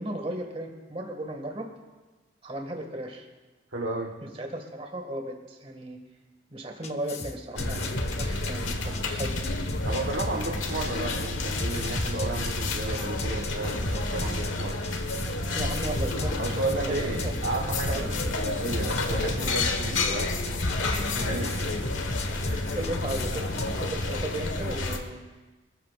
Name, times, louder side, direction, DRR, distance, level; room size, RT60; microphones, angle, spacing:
voice 1, 0.0-1.7 2.4-3.3 4.2-6.0 6.5-9.4 15.5-18.1 20.9-21.1 21.4-21.7 22.7-25.2, right 1 dB, 30° right, 3 dB, 2.1 m, -36 dB
voice 2, 3.7-4.1 9.8-14.8 16.4-20.6 21.0-21.5 22.4-22.7, right 2 dB, 80° right, -2 dB, 1.4 m, -33 dB
sound 1, 6.8-23.7, left 2 dB, 35° left, 1.0 m, -34 dB
sound 2, 7.6-25.0, left 2 dB, 90° left, 1.6 m, -30 dB
26.0 x 14.0 x 2.6 m, 1.2 s
head